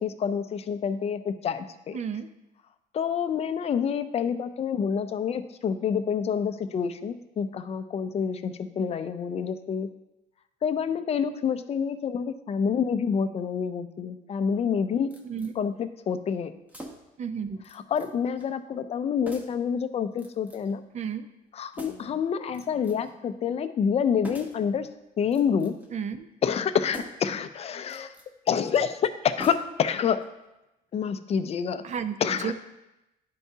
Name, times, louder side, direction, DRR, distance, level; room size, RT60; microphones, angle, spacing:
voice 1, 0.0-2.0 2.9-9.9 10.6-15.1 15.5-16.5 17.7-20.8 21.5-24.9 25.2-25.8 26.4-28.1 28.5-30.2 30.9-31.8 32.2-32.5, left 7 dB, 40° left, 10 dB, 0.5 m, -27 dB
voice 2, 1.9-2.3 15.3-15.5 17.2-17.6 20.9-21.3 25.9-26.3 31.8-32.2 32.4-32.5, right 7 dB, 40° right, 11 dB, 0.5 m, -31 dB
sound 1, 15.1-15.5 16.7-17.2 17.6-18.1 18.4-18.5 19.3-19.7 20.2-20.7 21.7-22.2 22.5-23.1 24.2-24.7 25.2-25.9 26.9-27.3 27.8-28.3 29.4-29.9 30.2-30.3, equal, 10° right, 0.9 m, -43 dB
11.0 x 4.5 x 2.8 m, 0.95 s
cardioid pair, 110°, 17 cm